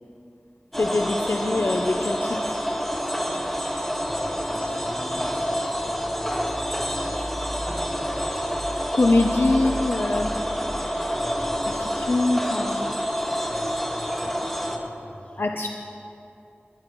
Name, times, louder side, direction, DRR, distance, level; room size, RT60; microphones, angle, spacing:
sound 1, 0.7-14.8, equal, 5° left, 1.4 m, -28 dB
voice 1, 0.8-2.6 8.9-10.3 11.7-12.9 15.4-15.7, left 2 dB, 75° left, 4 dB, 0.6 m, -23 dB
voice 2, 4.0-7.8 8.1-8.6 9.6-10.0 11.1-12.1 13.5-15.4, equal, 35° left, -4 dB, 2.9 m, -42 dB
20.5 x 12.5 x 3.1 m, 2.7 s
wide cardioid pair, 50°, 4 cm